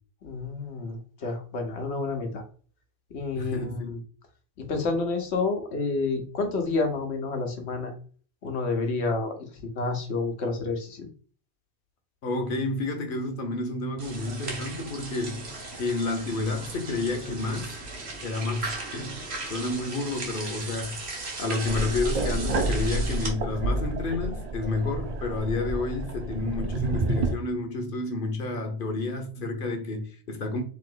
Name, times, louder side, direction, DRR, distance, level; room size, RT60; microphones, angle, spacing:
voice 1, 0.2-2.4 3.1-4.0 4.6-7.9 8.4-9.3 9.6-11.1, left 3 dB, 90° left, 1.3 m, -29 dB
voice 2, 3.4-4.0 12.2-17.7 18.2-21.0 21.4-30.6, left 2 dB, 55° left, 0.9 m, -30 dB
sound 1, 14.0-23.3, right 3 dB, 75° right, 1.4 m, -37 dB
sound 2, 21.7-27.3, right 2 dB, 45° right, 0.6 m, -29 dB
3.7 x 2.8 x 3.8 m
omnidirectional pair, 1.1 m